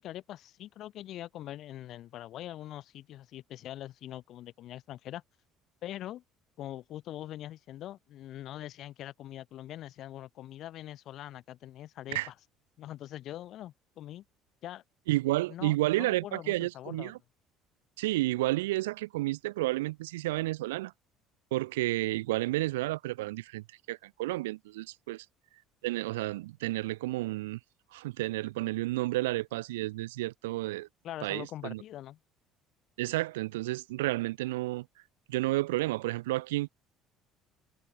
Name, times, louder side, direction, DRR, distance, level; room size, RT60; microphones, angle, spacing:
voice 1, 0.0-5.2 5.8-6.2 6.6-12.3 12.8-14.2 14.6-14.8 15.5-17.1 31.0-32.2, left 13 dB, 60° left, 2.7 m, -43 dB
voice 2, 15.1-17.2 18.0-20.9 21.5-25.3 25.8-27.6 27.9-30.9 31.2-31.8 33.0-34.9 35.3-36.7, right 18 dB, 80° right, 0.8 m, -31 dB
hypercardioid pair, 65°, 0 cm